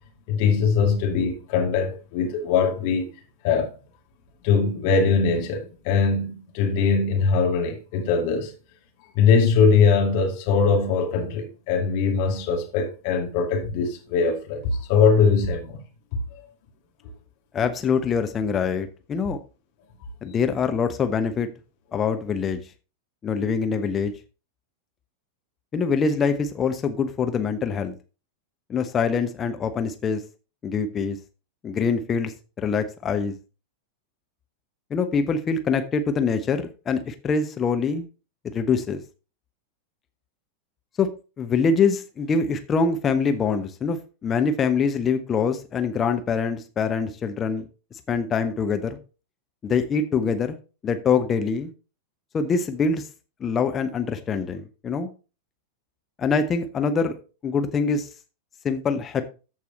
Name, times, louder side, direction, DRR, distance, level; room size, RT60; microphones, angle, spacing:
voice 1, 0.3-3.1 3.4-3.7 4.4-8.5 9.1-15.8 16.3-16.4, left 5 dB, 45° left, 2.4 m, -21 dB
voice 2, 17.5-19.4 20.2-21.5 21.9-22.6 23.2-24.1 25.7-27.9 28.7-30.2 30.6-31.2 31.6-32.3 32.6-33.3 34.9-38.1 38.5-39.0 41.0-41.1 41.4-47.7 48.1-49.0 49.6-50.6 50.8-51.7 52.3-53.1 53.4-55.1 56.2-57.2 57.4-58.1 58.6-59.3, left 5 dB, 25° left, 1.0 m, -24 dB
14.0 x 4.7 x 4.1 m
figure-of-eight pair, 90°, 0 cm